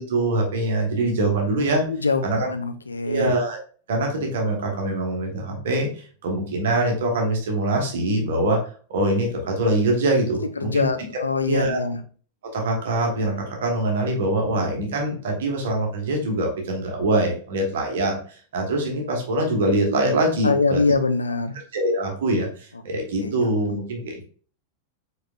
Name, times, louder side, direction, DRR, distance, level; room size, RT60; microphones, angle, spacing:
voice 1, 0.0-1.8 2.2-2.5 3.0-3.6 3.9-8.6 8.9-10.9 11.5-11.8 12.5-20.8 21.7-24.2, right 1 dB, 60° right, 1 dB, 1.3 m, -24 dB
voice 2, 1.9-3.3 10.6-12.0 20.4-21.6 23.2-23.3, left 4 dB, 75° left, 9 dB, 0.5 m, -23 dB
4.9 x 4.2 x 2.4 m, 0.42 s
figure-of-eight pair, 90°, 0 cm